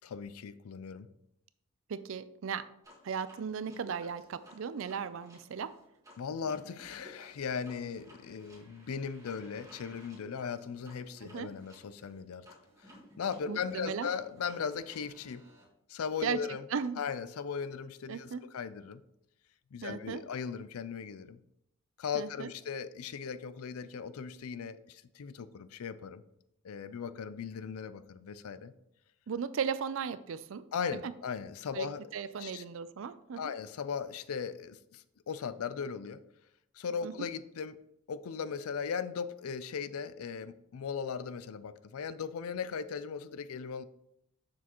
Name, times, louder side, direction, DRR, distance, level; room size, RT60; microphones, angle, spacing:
voice 1, 0.0-1.1 6.2-12.5 12.8-15.4 15.9-16.6 17.0-19.0 19.7-21.4 22.0-26.2 26.6-28.7 30.7-32.0 32.4-32.6 33.4-36.2 36.7-37.8 38.1-43.8, left 6 dB, 75° left, 14 dB, 0.4 m, -38 dB
voice 2, 1.9-2.7 3.0-5.7 11.2-11.5 13.5-14.1 16.2-16.4 16.7-17.0 18.1-18.4 19.8-20.2 22.1-22.5 29.3-30.6 31.0-31.1 31.7-31.9 32.1-33.5 37.0-37.3, right 6 dB, 60° right, 14 dB, 0.4 m, -36 dB
sound 1, 2.8-15.6, equal, 15° right, 1.7 m, -57 dB
7.1 x 6.2 x 3.0 m, 0.79 s
head